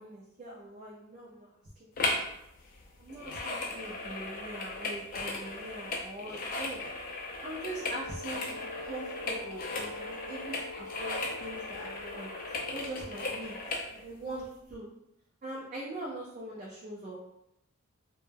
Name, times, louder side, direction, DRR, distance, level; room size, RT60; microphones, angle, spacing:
voice 1, 0.0-1.9 2.2-2.3 3.0-6.8 7.4-12.3 12.7-13.6 13.9-14.9 15.4-17.2, right 1 dB, 35° right, -5 dB, 0.4 m, -42 dB
sound 1, 2.0-2.3 2.6-13.9 14.4-14.5, left 2 dB, 40° left, 0.4 m, -37 dB
Brass instrument, 7.7-13.7, left 2 dB, 75° right, 0.7 m, -45 dB
2.1 x 2.1 x 3.2 m, 0.83 s
head